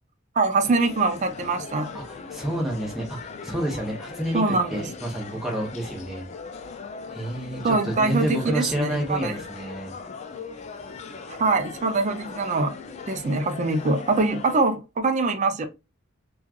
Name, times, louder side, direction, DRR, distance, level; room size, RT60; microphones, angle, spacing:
voice 1, 0.4-1.9 4.3-4.8 7.6-9.4 11.4-12.8 13.1-15.7, right 3 dB, 35° right, 0.4 m, -23 dB
sound 1, 0.6-14.6, left 4 dB, 35° left, 0.3 m, -39 dB
voice 2, 1.9-6.3 7.1-9.9, right 1 dB, ahead, 0.7 m, -29 dB
3.0 x 2.3 x 2.3 m
head